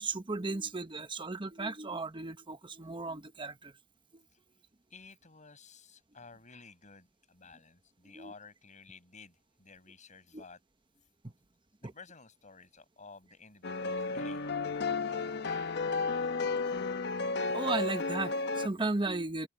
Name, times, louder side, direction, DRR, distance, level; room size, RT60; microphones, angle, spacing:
voice 1, 0.0-3.7 4.1-4.2 8.1-8.3 10.3-10.4 17.5-19.5, right 3 dB, 25° right, 1.1 m, -35 dB
voice 2, 4.9-10.6 11.8-15.9, left 4 dB, 40° left, 6.3 m, -54 dB
sound 1, 13.6-18.7, left 4 dB, 55° left, 1.0 m, -33 dB
head